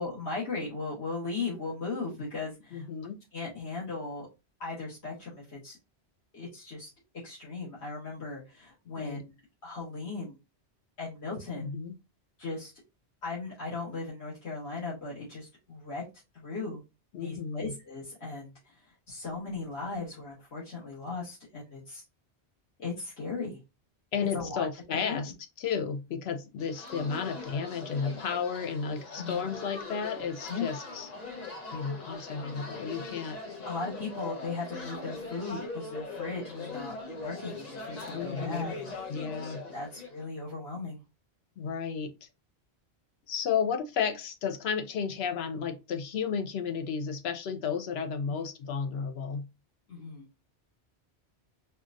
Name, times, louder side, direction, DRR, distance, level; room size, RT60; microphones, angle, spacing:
voice 1, 0.0-2.9 3.3-4.3 4.6-5.8 6.3-6.9 7.2-9.3 9.6-10.4 11.0-11.7 12.4-12.7 13.2-16.0 16.3-16.8 17.2-18.5 18.8-22.0 22.8-23.6 24.3-24.7 24.9-25.2 29.2-29.5 30.5-30.7 33.6-38.9 39.7-41.0 48.3-48.4 49.9-50.2, left 3 dB, 90° left, 1.6 m, -37 dB
voice 2, 2.7-3.2 9.0-9.2 11.6-11.9 17.1-17.7 24.1-25.3 25.6-31.1 31.7-33.4 38.1-38.7 39.1-39.6 41.6-42.3 43.3-49.5, left 6 dB, 75° left, 0.8 m, -33 dB
sound 1, 26.6-40.3, left 3 dB, 40° left, 0.9 m, -41 dB
4.4 x 2.3 x 2.5 m
omnidirectional pair, 1.1 m